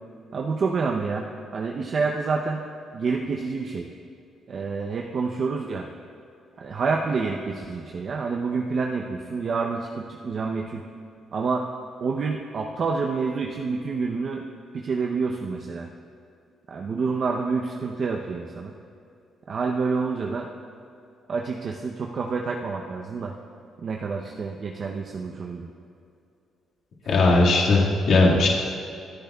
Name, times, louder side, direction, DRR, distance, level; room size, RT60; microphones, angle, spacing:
voice 1, 0.3-2.6 2.9-3.9 4.5-5.9 6.6-10.8 11.3-11.7 12.0-14.4 14.7-15.9 16.7-18.7 19.5-20.5 21.3-23.3 23.8-25.7, right 4 dB, 50° right, 1 dB, 0.7 m, -28 dB
voice 2, 27.1-28.5, left 2 dB, 70° left, -4 dB, 2.0 m, -18 dB
27.0 x 10.0 x 2.4 m, 2.5 s
cardioid pair, 90°, 0 cm